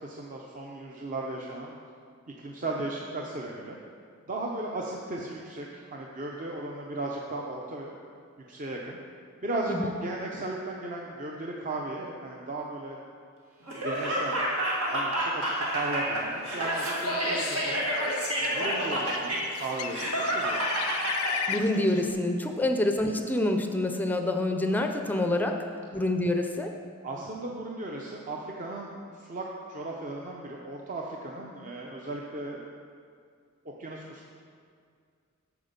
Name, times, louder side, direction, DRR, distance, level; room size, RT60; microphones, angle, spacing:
voice 1, 0.0-1.8 2.4-3.8 4.3-8.0 8.5-9.0 9.4-13.0 13.6-14.4 14.9-17.8 18.4-20.7 27.0-32.6 33.6-34.3, right 2 dB, 40° right, -1 dB, 0.6 m, -36 dB
Laughter, 13.7-21.4, right 1 dB, 85° right, 1.9 m, -29 dB
Bird, 16.6-22.1, left 9 dB, 85° left, 0.4 m, -37 dB
voice 2, 21.5-25.6 25.9-26.7, left 1 dB, 10° left, 4 dB, 0.4 m, -27 dB
8.2 x 6.9 x 5.2 m, 2.2 s
head